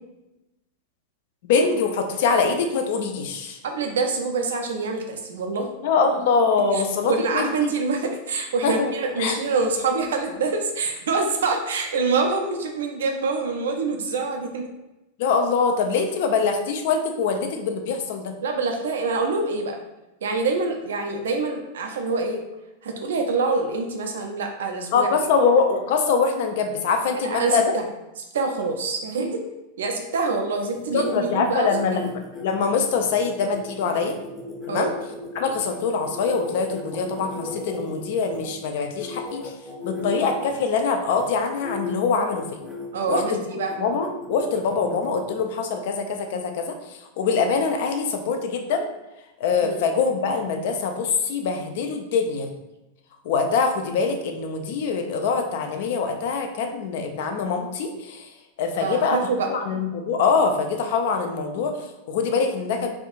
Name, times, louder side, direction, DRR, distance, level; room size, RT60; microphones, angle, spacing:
voice 1, 1.4-3.6 5.8-7.7 8.6-8.9 9.2-9.4 15.2-18.3 24.9-27.8 30.9-34.2 34.7-34.9 35.3-39.5 39.8-42.6 43.1-43.4 43.8-48.9 49.4-52.5 53.2-58.3 58.6-59.2 59.5-62.9, left 5 dB, 50° left, 5 dB, 0.4 m, -24 dB
voice 2, 3.6-5.7 6.7-14.7 18.4-19.8 20.2-22.4 22.8-25.1 27.3-27.8 28.2-29.4 29.8-31.7 34.7-35.0 42.9-43.7 49.6-49.8 58.8-59.5, right 3 dB, 60° right, 3 dB, 0.4 m, -25 dB
sound 1, 30.7-38.5 39.0-40.6 41.1-41.4 41.6-41.9 42.3-43.2 43.7-45.4, left 3 dB, 15° left, 0.7 m, -36 dB
3.5 x 2.3 x 2.5 m, 0.98 s
figure-of-eight pair, 90°, 0 cm